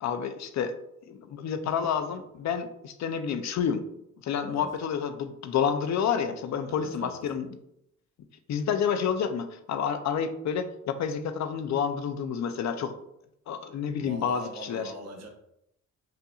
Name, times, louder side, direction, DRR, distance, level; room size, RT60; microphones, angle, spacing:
voice 1, 0.0-0.8 1.1-3.8 4.2-7.5 8.5-12.9 13.5-14.9, left 7 dB, 65° left, 8 dB, 0.5 m, -29 dB
voice 2, 4.4-4.7 6.6-7.2 14.0-15.3, right 1 dB, 60° right, 2 dB, 1.0 m, -43 dB
5.5 x 2.6 x 2.4 m, 0.76 s
cardioid pair, 100°, 29 cm